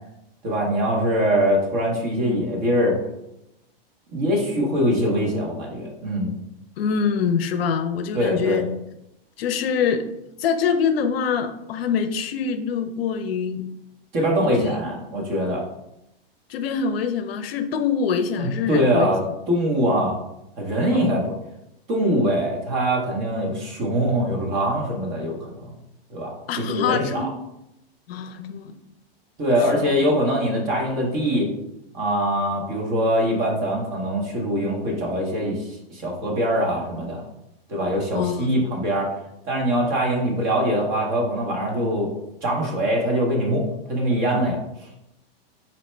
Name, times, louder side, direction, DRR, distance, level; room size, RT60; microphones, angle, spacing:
voice 1, 0.4-3.0 4.1-6.3 8.1-8.6 14.1-15.6 18.4-20.2 20.6-21.3 21.9-25.7 26.1-27.3 29.4-31.5 31.9-37.2 37.7-39.1 39.5-42.1 42.4-44.9, equal, 25° right, -1 dB, 0.8 m, -23 dB
voice 2, 6.8-8.7 9.4-10.1 10.4-13.7 14.4-14.8 16.5-19.2 20.9-21.1 26.5-27.3 28.1-28.7 29.8-29.9 38.1-38.6, left 6 dB, 75° left, 9 dB, 0.5 m, -25 dB
4.2 x 2.1 x 4.2 m, 0.84 s
supercardioid pair, 160°, 30 cm